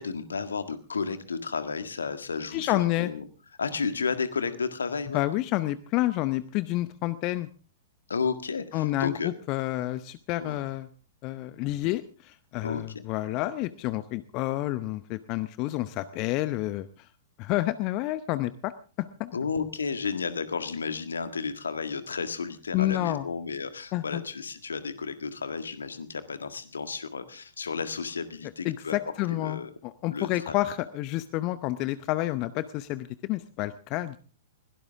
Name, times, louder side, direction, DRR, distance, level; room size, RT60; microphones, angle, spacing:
voice 1, 0.0-3.2 3.6-5.2 8.1-9.3 10.4-10.6 12.6-13.0 19.3-29.0 29.3-29.7 30.1-30.6, left 5 dB, 70° left, 11 dB, 1.7 m, -32 dB
voice 2, 2.5-3.1 5.1-7.5 8.7-10.9 11.2-17.1 17.4-18.7 19.0-19.4 22.7-23.3 23.9-24.2 28.6-34.2, left 16 dB, 35° left, 15 dB, 0.8 m, -29 dB
21.5 x 17.5 x 3.6 m, 0.38 s
figure-of-eight pair, 105°, 0 cm